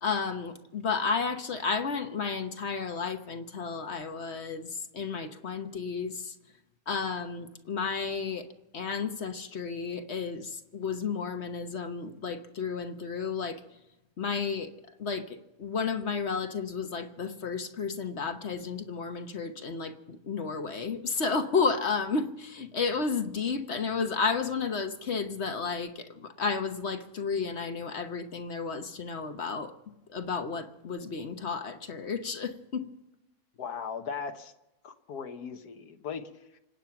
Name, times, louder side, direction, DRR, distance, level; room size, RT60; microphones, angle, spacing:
voice 1, 0.0-6.3 6.9-8.5 8.7-13.6 14.2-14.7 15.0-29.7 30.1-32.9, left 5 dB, 50° left, 8 dB, 1.2 m, -32 dB
voice 2, 33.6-34.5 34.8-36.6, left 6 dB, 80° left, 7 dB, 1.6 m, -38 dB
26.0 x 9.1 x 5.8 m, 0.94 s
omnidirectional pair, 1.6 m